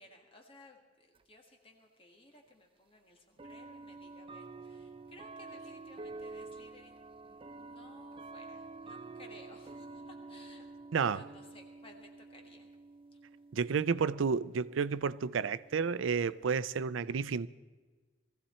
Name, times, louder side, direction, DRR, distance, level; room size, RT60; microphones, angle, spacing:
voice 1, 0.0-10.7 11.0-12.7 13.1-13.2, left 1 dB, 30° left, 1.5 m, -58 dB
sound 1, 1.2-1.3 2.4-2.5 3.4-16.6, right 3 dB, 30° right, 0.5 m, -49 dB
voice 2, 13.5-17.5, right 5 dB, 80° right, 0.4 m, -31 dB
20.0 x 15.0 x 4.3 m
head